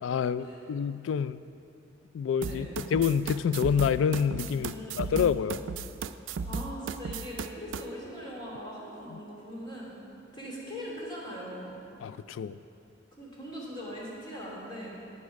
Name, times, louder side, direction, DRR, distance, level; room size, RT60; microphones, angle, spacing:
voice 1, 0.0-1.4 2.1-4.7 5.0-5.6 12.0-12.6, left 7 dB, 85° left, 15 dB, 0.3 m, -27 dB
voice 2, 2.4-2.9 4.5-5.4 6.4-9.9 10.3-11.8 13.2-14.9, equal, 25° left, -5 dB, 2.8 m, -41 dB
sound 1, 2.4-7.8, right 5 dB, 80° right, 0.4 m, -35 dB
9.8 x 9.7 x 5.2 m, 2.6 s
head